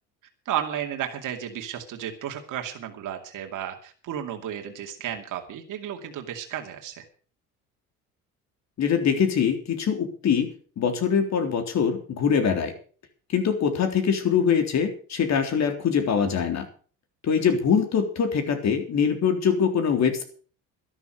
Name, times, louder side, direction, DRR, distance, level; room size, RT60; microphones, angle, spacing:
voice 1, 0.5-7.0, right 10 dB, 65° right, 3 dB, 2.6 m, -33 dB
voice 2, 8.8-10.5 10.8-12.7 13.3-16.7 17.2-20.2, left 7 dB, 50° left, 6 dB, 3.7 m, -23 dB
12.5 x 11.5 x 6.4 m, 0.41 s
cardioid pair, 95°, 34 cm